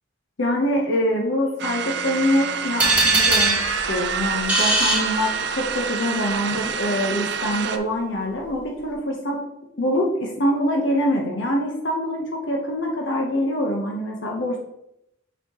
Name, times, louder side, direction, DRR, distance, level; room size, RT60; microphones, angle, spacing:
voice 1, 0.4-3.6 3.9-9.4 9.8-14.6, equal, 65° left, -1 dB, 0.9 m, -24 dB
sound 1, 1.6-7.8, right 7 dB, 60° right, 0.5 m, -28 dB
sound 2, 2.8-5.8, right 2 dB, 10° right, 2.2 m, -21 dB
8.0 x 4.2 x 3.0 m, 0.82 s
head